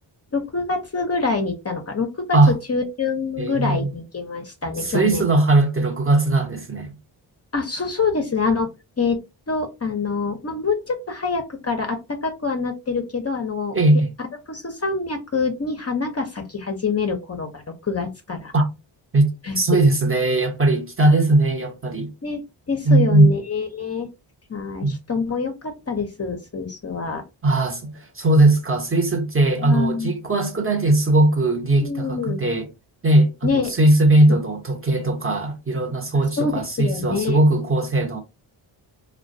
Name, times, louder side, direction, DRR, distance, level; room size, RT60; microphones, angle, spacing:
voice 1, 0.3-2.4 2.7-5.3 7.5-8.7 9.0-9.2 9.5-13.8 14.5-18.5 19.4-19.6 22.2-22.4 22.7-24.1 24.5-27.2 29.6-30.1 31.8-32.4 33.4-33.7 36.4-37.4, left 4 dB, 30° left, 0.6 m, -25 dB
voice 2, 3.4-3.9 4.8-6.9 13.7-14.1 18.5-18.6 19.1-19.3 19.6-22.1 22.8-23.3 24.8-25.0 27.4-32.7 33.0-38.2, right 2 dB, 25° right, 0.8 m, -19 dB
2.2 x 2.2 x 2.6 m
supercardioid pair, 45°, 49 cm